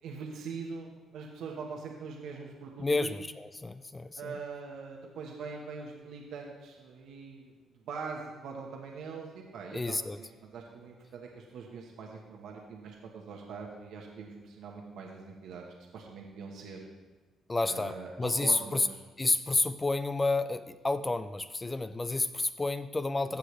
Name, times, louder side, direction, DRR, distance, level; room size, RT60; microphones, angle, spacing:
voice 1, 0.0-3.1 4.1-15.6 15.9-16.8 17.7-19.0, right 5 dB, 80° right, 0 dB, 1.2 m, -43 dB
voice 2, 2.8-4.3 9.7-10.2 17.5-17.9 18.2-18.9 19.2-23.4, left 2 dB, 20° left, 12 dB, 0.4 m, -30 dB
15.5 x 6.4 x 3.2 m, 1.3 s
cardioid pair, 90°, 0 cm